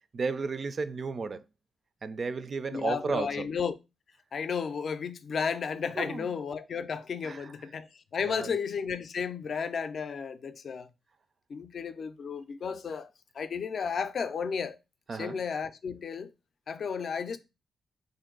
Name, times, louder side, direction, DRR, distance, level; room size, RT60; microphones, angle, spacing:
voice 1, 0.1-1.4 2.0-3.5 6.0-6.3 7.2-7.5 8.2-8.6 15.1-15.4, right 4 dB, 50° right, 0.3 m, -33 dB
voice 2, 2.7-3.8 4.3-10.9 11.5-13.1 13.3-14.8 15.2-16.3 16.7-17.4, left 6 dB, 60° left, 0.4 m, -33 dB
3.9 x 2.6 x 3.7 m
cardioid pair, 90°, 0 cm